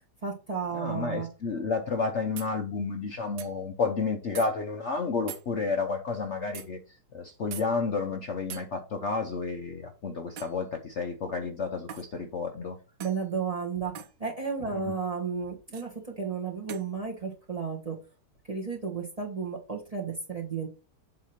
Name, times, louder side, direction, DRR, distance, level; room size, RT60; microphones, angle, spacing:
voice 1, 0.2-1.3 13.0-13.9 14.2-18.0 18.5-20.7, right 5 dB, 25° right, 1 dB, 1.1 m, -33 dB
voice 2, 0.7-12.8 14.7-14.9, left 4 dB, 55° left, 5 dB, 0.9 m, -31 dB
sound 1, 2.4-2.5 3.4-3.5 4.3-4.5 5.3-5.5 6.5-6.7 7.5-7.7 8.5-8.7 10.4-10.6 11.9-12.1 13.0-13.2 13.9-14.1 15.7-15.9 16.7-16.9, right 8 dB, 75° right, 1.5 m, -41 dB
7.6 x 3.0 x 5.7 m, 0.32 s
omnidirectional pair, 1.9 m